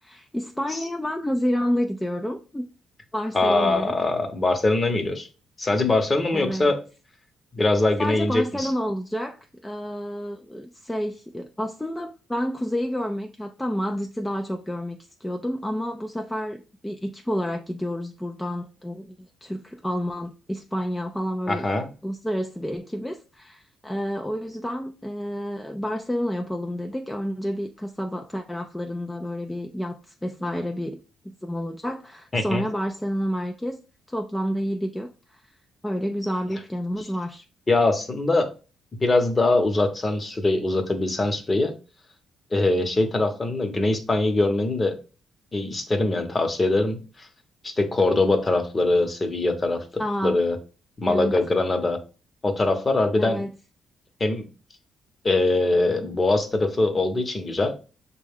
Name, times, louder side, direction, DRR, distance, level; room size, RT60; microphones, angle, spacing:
voice 1, 0.0-2.7 3.1-4.0 6.3-6.7 8.0-21.7 22.0-31.0 31.4-33.8 34.1-35.4 35.8-37.4 50.0-50.4 51.1-51.3 53.2-53.5, equal, 10° left, 0.4 m, -29 dB
voice 2, 3.3-5.3 5.6-6.8 7.5-8.7 21.5-21.9 32.3-32.6 37.7-38.5 39.0-41.7 42.5-45.0 45.5-47.3 47.6-49.8 50.2-50.6 51.0-52.0 52.4-53.4 54.2-54.5 55.2-57.8, left 2 dB, 25° left, 0.9 m, -22 dB
6.1 x 2.3 x 3.5 m
cardioid pair, 90°, 0 cm